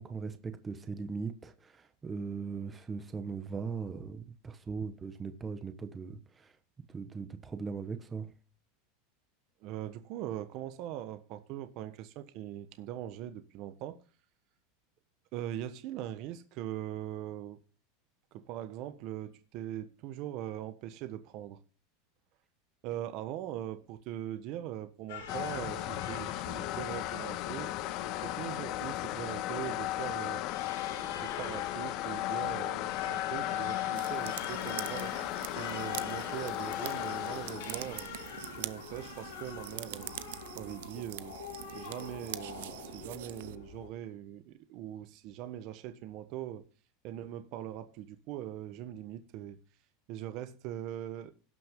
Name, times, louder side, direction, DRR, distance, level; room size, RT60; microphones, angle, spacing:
voice 1, 0.0-6.5 6.9-8.3, right 5 dB, 20° right, 1.2 m, -39 dB
voice 2, 9.6-14.0 15.3-17.6 18.3-21.6 22.8-27.8 28.2-30.4 30.8-35.1 35.5-38.1 38.5-40.2 40.6-41.3 41.7-46.6 47.0-49.6 50.1-51.3, right 12 dB, 55° right, 1.2 m, -41 dB
Crying sobbing, 25.1-43.9, left 6 dB, 80° left, 6.1 m, -46 dB
sound 1, 25.3-40.1, left 16 dB, 50° left, 0.7 m, -36 dB
sound 2, 34.0-43.6, right 15 dB, 75° right, 0.7 m, -44 dB
17.5 x 6.0 x 3.8 m
supercardioid pair, 120°, 0 cm